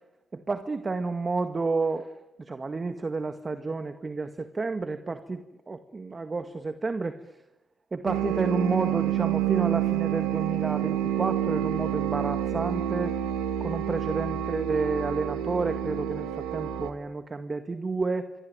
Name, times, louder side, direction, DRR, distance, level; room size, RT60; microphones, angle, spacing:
voice 1, 0.3-2.1 2.4-7.2 7.9-13.1 13.6-18.3, right 3 dB, 35° right, 8 dB, 1.9 m, -30 dB
sound 1, 8.1-16.9, right 11 dB, 90° right, 1.7 m, -28 dB
26.0 x 23.5 x 9.6 m, 1.0 s
supercardioid pair, 55°, 0 cm